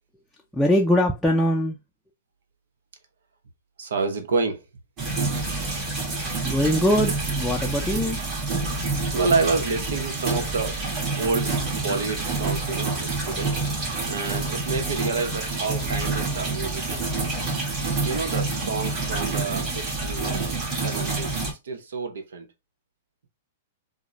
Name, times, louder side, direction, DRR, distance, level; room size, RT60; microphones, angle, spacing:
voice 1, 0.5-1.8 6.4-8.2, left 1 dB, 5° left, 0.4 m, -22 dB
voice 2, 3.8-4.6 9.1-10.8 11.2-13.5 14.1-17.1 18.0-20.5 20.8-22.5, right 4 dB, 85° right, 0.8 m, -29 dB
sound 1, 5.0-21.5, right 3 dB, 35° right, 1.7 m, -27 dB
3.7 x 2.1 x 3.1 m
hypercardioid pair, 140°, 0 cm